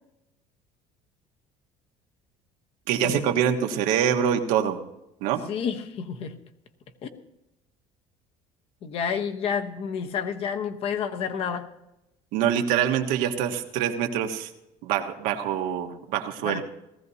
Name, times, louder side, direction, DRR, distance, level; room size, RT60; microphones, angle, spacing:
voice 1, 2.9-4.8 5.2-5.4 12.3-14.5 14.8-16.6, right 9 dB, 85° right, 4 dB, 1.5 m, -25 dB
voice 2, 5.5-6.3 7.0-7.2 8.8-11.7 16.4-16.6, left 7 dB, 45° left, 7 dB, 1.1 m, -30 dB
18.5 x 15.0 x 2.8 m, 0.89 s
cardioid pair, 170°, 14 cm